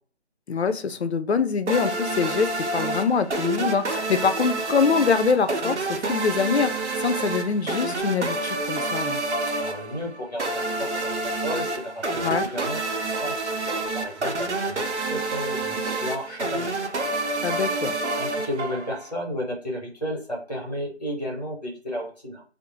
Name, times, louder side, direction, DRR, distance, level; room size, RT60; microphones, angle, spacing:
voice 1, 0.5-9.2 12.2-12.5 17.4-17.9, left 5 dB, 70° left, 0.5 m, -24 dB
sound 1, 1.7-19.1, right 2 dB, 80° right, 0.7 m, -28 dB
voice 2, 9.6-16.7 18.2-22.4, equal, 35° left, 1.1 m, -33 dB
2.4 x 2.0 x 3.0 m
figure-of-eight pair, 180°, 34 cm